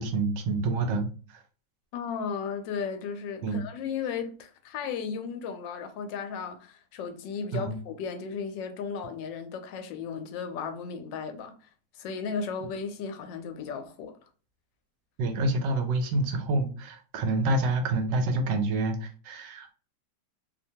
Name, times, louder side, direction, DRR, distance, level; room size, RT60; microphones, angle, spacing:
voice 1, 0.0-1.4 3.4-3.6 7.5-7.8 15.2-19.7, right 2 dB, 80° right, 1.2 m, -28 dB
voice 2, 1.9-11.5 11.9-14.2, left 6 dB, 80° left, 1.2 m, -35 dB
3.0 x 2.2 x 2.7 m
omnidirectional pair, 2.0 m